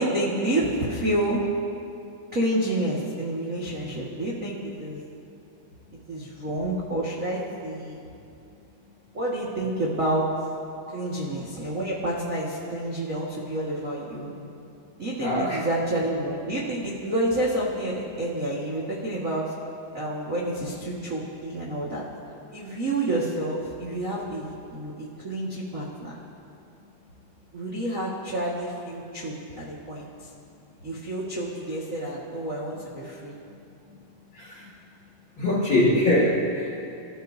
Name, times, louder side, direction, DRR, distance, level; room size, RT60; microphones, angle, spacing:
voice 1, 0.0-1.5 2.3-5.0 6.1-8.0 9.1-10.3 10.9-14.3 15.0-19.5 19.9-22.0 22.5-26.2 27.5-30.0 30.8-33.4, right 1 dB, 40° right, -5 dB, 1.2 m, -29 dB
voice 2, 15.2-15.6 30.9-31.0 33.9-34.0 34.3-34.7 35.4-36.9, left 1 dB, 40° left, -5 dB, 1.9 m, -24 dB
26.0 x 14.0 x 2.8 m, 2.5 s
omnidirectional pair, 4.5 m